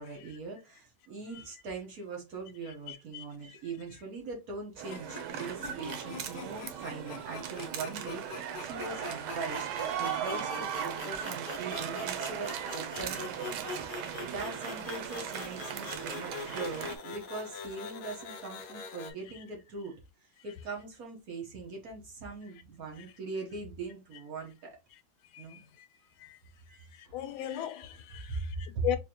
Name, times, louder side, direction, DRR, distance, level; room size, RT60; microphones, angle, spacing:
voice 1, 0.0-9.7 10.0-20.0 20.2-24.8 25.4-25.6 26.7-27.1 27.4-27.5 28.3-28.9, right 4 dB, 50° right, 1.3 m, -41 dB
voice 2, 2.9-3.6 10.0-10.2 16.5-16.6 25.3-25.9 26.2-26.4 27.0-29.0, left 12 dB, 85° left, 1.4 m, -38 dB
sound 1, 4.8-19.1, left 5 dB, 70° left, 0.9 m, -44 dB
sound 2, 4.8-17.0, right 9 dB, 85° right, 1.5 m, -37 dB
3.9 x 2.8 x 2.8 m
omnidirectional pair, 2.2 m